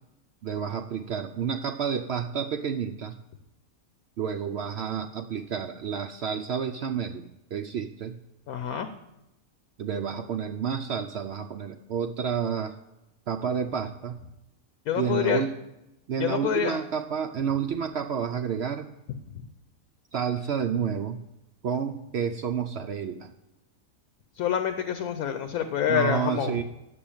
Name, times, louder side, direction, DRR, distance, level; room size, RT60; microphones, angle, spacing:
voice 1, 0.4-3.2 4.2-7.3 7.5-8.2 9.8-12.8 13.3-14.2 15.0-15.5 16.1-18.9 20.1-21.2 21.6-23.3 25.9-26.6, right 7 dB, 65° right, 7 dB, 0.6 m, -30 dB
voice 2, 8.5-8.9 14.9-15.4 16.2-16.8 19.3-19.5 24.4-26.6, left 8 dB, 75° left, 8 dB, 1.2 m, -27 dB
9.3 x 6.9 x 8.7 m, 0.93 s
omnidirectional pair, 1.6 m